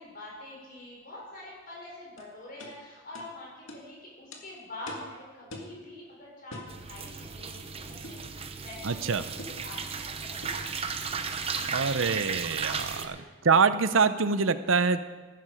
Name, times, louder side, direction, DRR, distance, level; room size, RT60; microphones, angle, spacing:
voice 1, 0.0-9.8 10.2-10.9 12.7-13.1, left 1 dB, 45° left, -4 dB, 5.6 m, -45 dB
sound 1, 2.2-2.3 2.6-2.7 3.1-3.3 3.7-3.8 4.3-4.4 4.9-5.1 5.5-5.8 6.5-6.7 8.0-8.3 9.4-9.6 10.4-10.7, left 1 dB, 75° left, 2.0 m, -43 dB
sound 2, 6.7-13.1, right 5 dB, 30° right, 0.8 m, -35 dB
voice 2, 8.8-9.2 11.7-13.2 13.4-15.0, right 5 dB, 70° right, 12 dB, 0.7 m, -25 dB
15.0 x 12.0 x 5.1 m, 1.3 s
head